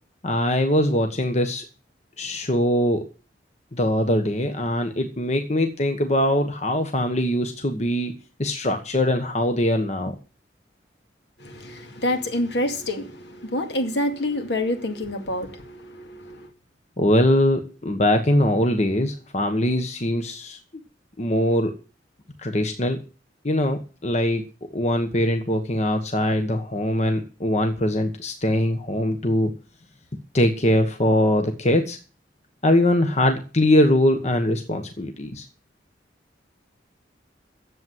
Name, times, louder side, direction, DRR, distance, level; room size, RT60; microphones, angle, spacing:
voice 1, 0.2-1.6 2.2-3.0 3.7-8.1 8.4-10.1 17.0-20.6 21.2-21.7 22.4-23.0 23.4-24.4 24.7-29.5 30.3-32.0 32.6-35.4, left 1 dB, 40° left, 1.3 m, -22 dB
voice 2, 11.4-16.5, left 1 dB, 70° left, 2.3 m, -27 dB
10.5 x 7.7 x 9.5 m
head